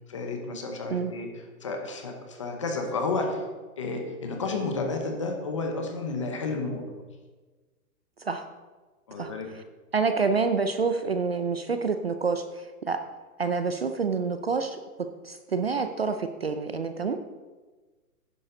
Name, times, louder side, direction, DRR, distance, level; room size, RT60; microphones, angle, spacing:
voice 1, 0.1-1.3 1.6-3.4 3.8-6.9 9.1-9.5, left 3 dB, 20° left, 3 dB, 0.8 m, -31 dB
voice 2, 9.9-13.0 13.4-14.8 15.2-17.2, right 4 dB, 40° right, 8 dB, 0.5 m, -27 dB
11.0 x 10.0 x 3.8 m, 1.3 s
hypercardioid pair, 170°, 46 cm